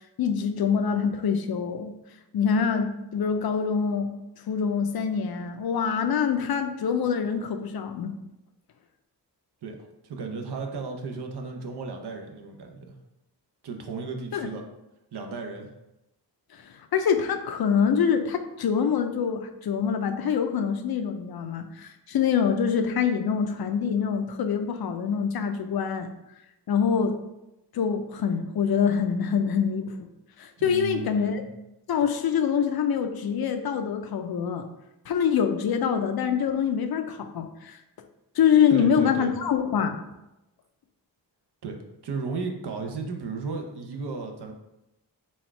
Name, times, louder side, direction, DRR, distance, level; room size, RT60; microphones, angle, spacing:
voice 1, 0.2-1.9 2.3-4.1 4.5-8.2 14.3-14.5 16.5-16.6 16.9-26.1 26.7-27.2 27.7-30.1 30.4-31.4 31.9-34.7 35.1-37.8 38.4-40.0, left 7 dB, 60° left, 7 dB, 0.5 m, -25 dB
voice 2, 9.6-12.9 13.6-14.7 15.1-15.7 30.6-31.4 38.7-39.3 41.6-41.8 42.0-44.5, right 4 dB, 70° right, 3 dB, 0.7 m, -34 dB
4.3 x 2.4 x 4.4 m, 0.92 s
wide cardioid pair, 115°, 41 cm